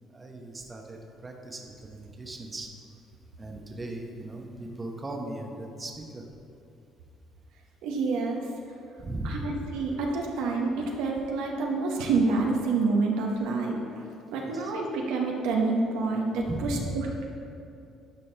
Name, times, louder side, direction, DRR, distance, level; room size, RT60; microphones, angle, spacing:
voice 1, 0.1-2.7 3.4-6.2 9.0-9.5 14.4-14.7 16.5-16.9, right 1 dB, 25° right, 2 dB, 0.9 m, -38 dB
voice 2, 7.8-8.4 9.2-13.8 14.3-17.2, right 3 dB, 80° right, 0 dB, 0.8 m, -28 dB
11.0 x 4.2 x 3.3 m, 2.6 s
supercardioid pair, 75°, 0 cm